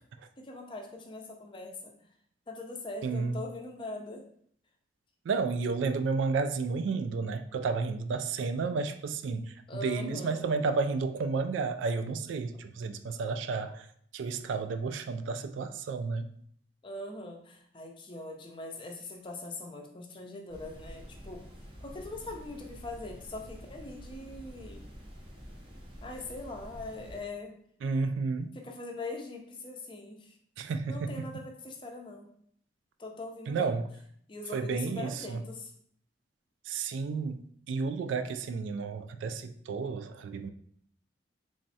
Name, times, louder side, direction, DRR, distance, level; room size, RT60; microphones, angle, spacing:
voice 1, 0.4-1.9 2.5-4.2 9.7-10.4 16.8-21.5 21.8-24.8 26.0-27.5 28.5-30.3 30.9-32.3 33.0-33.7 34.3-35.7, left 2 dB, 25° left, 0.5 m, -42 dB
voice 2, 3.0-3.4 5.2-13.9 14.1-16.3 27.8-28.6 30.6-31.1 33.5-33.9 34.5-35.4 36.6-40.5, right 4 dB, 85° right, 0.3 m, -32 dB
sound 1, 20.5-27.2, equal, 25° right, 0.6 m, -48 dB
3.5 x 3.1 x 2.7 m
head